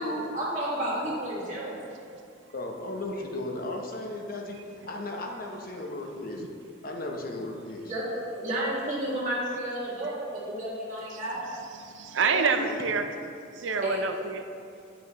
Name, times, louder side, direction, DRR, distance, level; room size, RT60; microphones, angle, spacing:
voice 1, 0.0-1.9 7.9-8.1 8.3-11.4 13.8-14.0, right 1 dB, 40° right, -7 dB, 1.9 m, -31 dB
voice 2, 2.5-4.6 4.9-6.4 6.8-7.9 10.4-10.5 12.2-12.7 13.0-13.2, left 2 dB, 45° left, 1 dB, 0.9 m, -35 dB
voice 3, 11.7-13.1 13.5-14.5, right 5 dB, 70° right, 6 dB, 0.6 m, -28 dB
9.9 x 6.1 x 3.1 m, 2.5 s
head